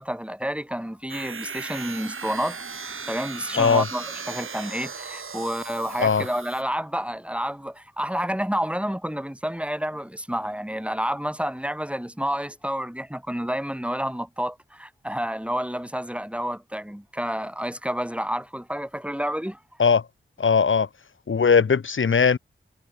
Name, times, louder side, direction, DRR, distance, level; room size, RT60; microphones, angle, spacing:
voice 1, 0.0-2.6 3.1-19.6, equal, 5° right, 6.1 m, -29 dB
sound 1, 1.1-6.6, right 5 dB, 85° right, 4.1 m, -37 dB
voice 2, 20.4-20.9 21.3-22.4, left 5 dB, 75° left, 1.3 m, -19 dB
cardioid pair, 45°, 21 cm